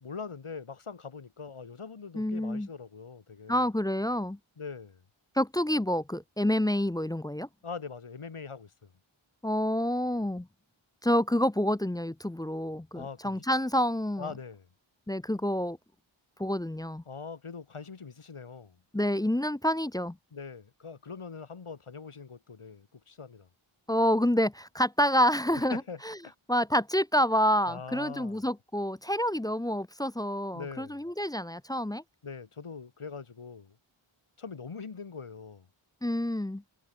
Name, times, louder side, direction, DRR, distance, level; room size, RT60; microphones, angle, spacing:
voice 1, 0.0-3.7 4.6-5.0 7.6-8.9 12.9-13.4 14.2-14.7 17.1-18.8 20.3-23.5 25.7-26.3 27.7-28.4 30.5-31.0 32.2-33.8 34.4-35.7, left 5 dB, 85° left, 2.1 m, -42 dB
voice 2, 2.1-2.7 3.5-4.4 5.4-7.5 9.4-10.5 11.0-14.3 15.1-15.8 16.4-17.0 18.9-20.2 23.9-26.2 26.5-32.0 36.0-36.6, equal, 10° left, 0.4 m, -28 dB
wide cardioid pair, 40°, 49 cm